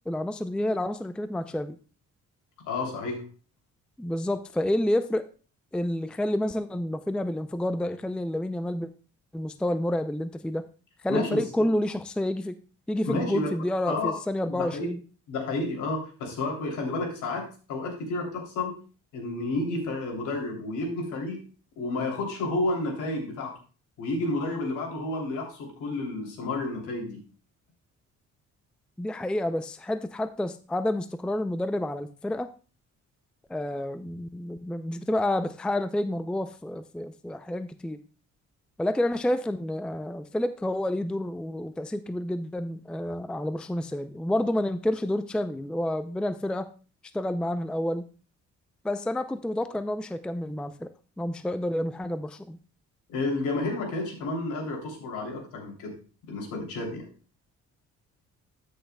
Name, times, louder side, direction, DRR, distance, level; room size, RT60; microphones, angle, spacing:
voice 1, 0.1-1.8 4.0-5.2 5.7-8.9 9.3-10.6 11.0-12.5 12.9-15.0 29.0-32.5 33.5-38.0 38.8-46.7 47.1-48.0 48.8-50.9 51.2-52.6, left 1 dB, 5° left, 11 dB, 0.4 m, -29 dB
voice 2, 2.7-3.2 11.1-11.7 13.0-13.5 13.9-14.1 14.5-14.9 15.3-18.7 19.1-21.4 21.8-23.5 24.0-27.2 53.1-55.9 56.3-57.0, left 2 dB, 85° left, 0 dB, 3.1 m, -31 dB
13.5 x 6.5 x 2.3 m, 0.36 s
cardioid pair, 90°, 30 cm